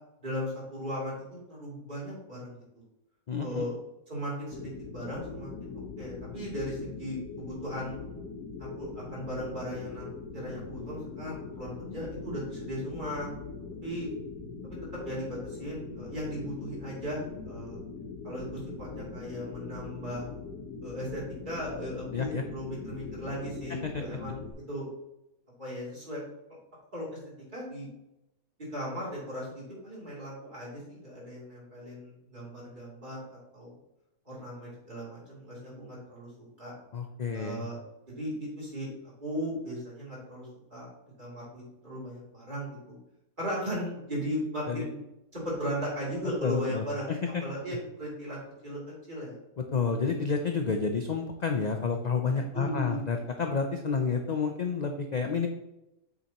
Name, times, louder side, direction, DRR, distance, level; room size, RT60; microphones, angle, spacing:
voice 1, 0.2-2.6 3.4-3.7 4.1-5.5 6.0-8.0 8.8-10.1 10.3-13.3 13.8-14.1 14.6-14.8 15.0-17.8 18.2-20.3 20.8-24.4 24.7-24.9 25.6-26.2 26.9-27.1 27.5-27.9 28.7-33.7 34.2-36.3 36.6-36.7 37.3-37.8 38.2-38.9 39.2-40.9 41.2-43.0 43.4-45.0 45.3-47.1 47.4-48.8 49.1-49.4 52.3-53.0, equal, 35° right, -6 dB, 3.3 m, -37 dB
voice 2, 3.3-3.6 22.1-22.4 23.7-24.0 36.9-37.7 44.7-44.9 46.4-47.4 49.6-55.5, left 5 dB, 55° left, 4 dB, 0.4 m, -30 dB
sound 1, 4.5-24.5, left 4 dB, 80° left, 1.3 m, -42 dB
8.2 x 6.8 x 3.0 m, 0.88 s
omnidirectional pair, 1.5 m